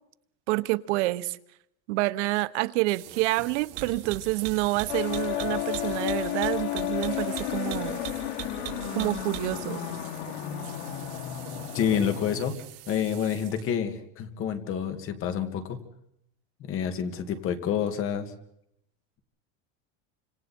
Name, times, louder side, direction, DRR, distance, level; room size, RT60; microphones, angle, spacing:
voice 1, 0.5-1.4 1.9-8.0 8.9-9.9, right 20 dB, 85° right, 0.9 m, -28 dB
sound 1, 2.9-13.7, right 11 dB, 60° right, 4.6 m, -41 dB
sound 2, 4.9-12.5, left 12 dB, 90° left, 2.2 m, -32 dB
voice 2, 11.7-12.6 12.9-15.8 16.6-18.3, left 8 dB, 40° left, 2.2 m, -28 dB
29.5 x 26.0 x 4.4 m
cardioid pair, 165°, 35 cm